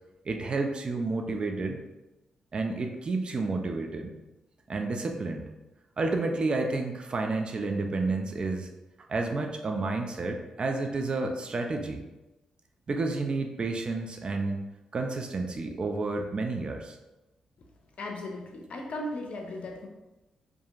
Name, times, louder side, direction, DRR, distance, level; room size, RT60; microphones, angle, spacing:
voice 1, 0.3-1.8 2.5-4.1 4.7-5.5 6.0-8.7 9.1-12.0 12.9-14.7 14.9-17.0, right 3 dB, 45° right, 3 dB, 0.4 m, -30 dB
voice 2, 18.0-19.9, left 1 dB, 60° left, 2 dB, 0.5 m, -36 dB
2.7 x 2.5 x 2.4 m, 1.0 s
supercardioid pair, 55°, 2 cm